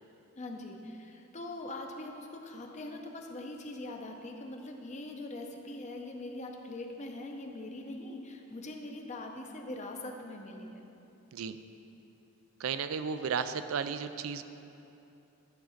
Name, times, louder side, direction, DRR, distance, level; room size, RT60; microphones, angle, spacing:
voice 1, 0.4-10.8, left 2 dB, 35° left, 2 dB, 0.6 m, -42 dB
voice 2, 12.6-14.4, right 6 dB, 75° right, 11 dB, 0.4 m, -34 dB
11.0 x 3.8 x 6.4 m, 2.9 s
head